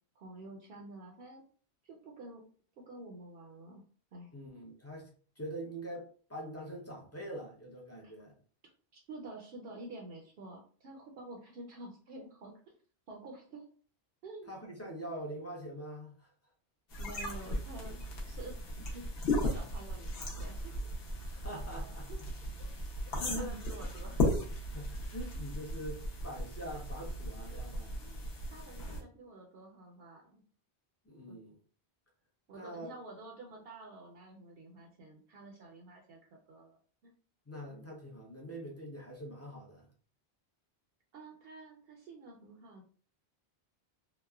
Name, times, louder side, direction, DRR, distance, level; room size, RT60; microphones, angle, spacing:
voice 1, 0.2-1.4 1.8-2.4 2.9-3.8 4.1-4.3 8.0-8.1 8.9-12.5 13.1-13.6 14.2-14.5 17.0-18.6 18.9-20.8 21.8-22.2 22.6-22.7 23.1-24.3 28.0-30.4 31.3-31.4 32.5-36.8 37.0-37.1 37.7-37.8 41.1-42.8, right 2 dB, 65° right, 0.7 m, -49 dB
voice 2, 4.3-5.1 5.4-8.3 14.5-16.3 21.3-22.1 23.2-23.6 24.7-27.9 31.1-31.5 32.5-32.9 37.5-39.9, right 1 dB, 25° left, 0.3 m, -44 dB
sound 1, 16.9-29.0, left 1 dB, 65° left, 0.9 m, -36 dB
3.0 x 2.0 x 2.2 m
omnidirectional pair, 1.1 m